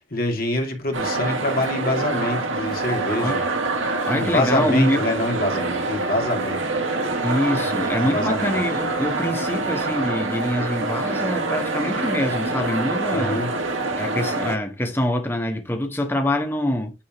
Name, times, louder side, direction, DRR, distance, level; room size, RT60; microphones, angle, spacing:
voice 1, 0.0-3.4 4.2-6.6 7.5-8.6 13.1-13.5, left 1 dB, 50° left, 2.6 m, -25 dB
sound 1, 0.9-14.6, right 3 dB, 80° right, 1.8 m, -25 dB
voice 2, 4.0-5.1 7.2-13.4 13.9-16.9, left 1 dB, 10° left, 1.5 m, -25 dB
9.9 x 4.1 x 3.7 m
head